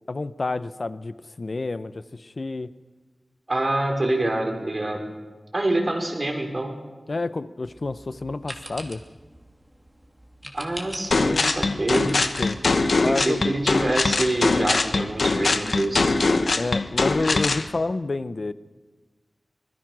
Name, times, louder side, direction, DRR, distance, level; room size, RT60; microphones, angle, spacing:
voice 1, 0.1-2.7 7.1-9.0 12.4-12.6 13.0-13.4 16.6-18.5, left 3 dB, 60° left, 14 dB, 0.8 m, -29 dB
voice 2, 3.5-5.1 5.5-6.8 10.5-12.2 13.0-16.2, right 1 dB, 45° right, 3 dB, 4.8 m, -26 dB
sound 1, 7.6-13.2, equal, 5° right, 2.9 m, -42 dB
sound 2, 11.1-17.7, left 3 dB, 80° left, 1.2 m, -22 dB
25.0 x 20.5 x 6.2 m, 1.3 s
wide cardioid pair, 65°, 0 cm